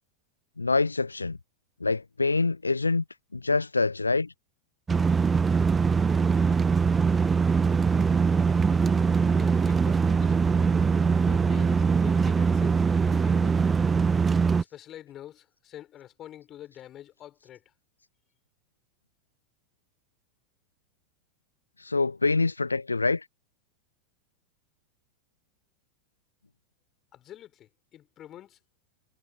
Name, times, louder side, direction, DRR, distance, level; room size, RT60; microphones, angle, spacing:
voice 1, 0.6-1.4 1.8-3.0 3.3-4.3 21.8-23.2, left 3 dB, 80° left, 0.7 m, -25 dB
sound 1, 4.9-14.6, right 5 dB, 15° right, 1.3 m, -22 dB
voice 2, 9.4-10.7 11.2-13.5 14.6-17.6 27.1-28.7, left 12 dB, 30° left, 5.1 m, -46 dB
figure-of-eight pair, 90°, 0 cm